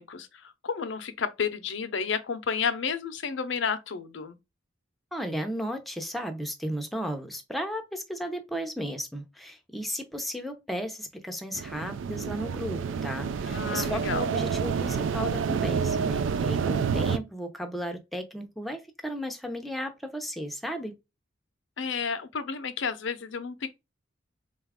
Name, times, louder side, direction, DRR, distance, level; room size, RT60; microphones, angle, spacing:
voice 1, 0.0-4.4 13.4-14.3 21.8-23.7, left 6 dB, 65° left, 0.6 m, -31 dB
voice 2, 5.1-20.9, equal, ahead, 0.6 m, -34 dB
sound 1, 11.5-17.2, right 6 dB, 70° right, 0.3 m, -28 dB
3.9 x 2.4 x 3.4 m
head